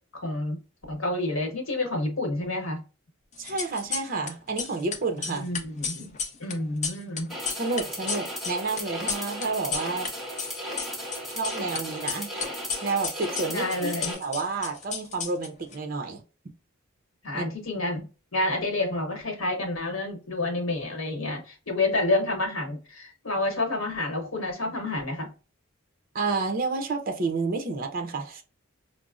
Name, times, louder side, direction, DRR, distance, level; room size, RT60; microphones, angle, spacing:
voice 1, 0.1-0.6 0.9-2.8 5.3-6.1 6.4-7.3 13.5-14.2 17.2-25.3, left 2 dB, 80° left, 1.0 m, -29 dB
sound 1, 3.4-4.3 4.6-10.1 10.4-11.8 12.1-15.8, left 6 dB, 35° left, 0.5 m, -33 dB
voice 2, 3.4-5.5 7.6-10.1 11.3-12.5 12.8-13.9 14.2-16.2 17.3-17.4 26.1-28.4, right 3 dB, 45° right, 0.6 m, -30 dB
sound 2, 7.3-14.1, equal, ahead, 1.4 m, -36 dB
5.0 x 2.0 x 2.4 m
head